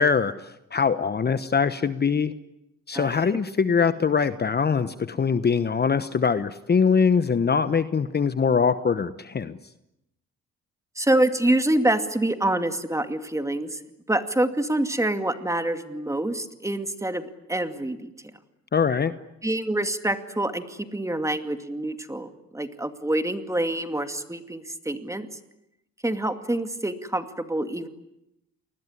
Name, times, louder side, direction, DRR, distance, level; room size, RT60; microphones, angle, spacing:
voice 1, 0.0-2.3 2.9-9.6 18.7-19.1, left 6 dB, 35° left, 13 dB, 1.1 m, -23 dB
voice 2, 2.9-3.3 11.0-13.8 14.1-17.2 17.5-18.1 19.4-25.3 26.0-27.9, right 1 dB, 10° right, 8 dB, 2.4 m, -26 dB
28.5 x 20.5 x 9.9 m, 0.86 s
cardioid pair, 90°, 30 cm